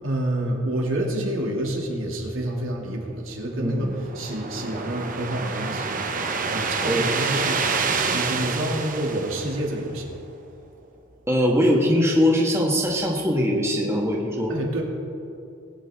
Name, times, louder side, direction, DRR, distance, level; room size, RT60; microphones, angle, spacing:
voice 1, 0.0-3.9 4.1-10.1 14.5-14.8, right 1 dB, 85° right, -1 dB, 2.6 m, -28 dB
sound 1, 3.5-10.0, right 4 dB, 40° right, 0.9 m, -28 dB
voice 2, 3.6-3.9 6.8-7.1 11.3-14.5, equal, 15° right, -2 dB, 1.6 m, -21 dB
21.0 x 9.3 x 3.6 m, 2.6 s
head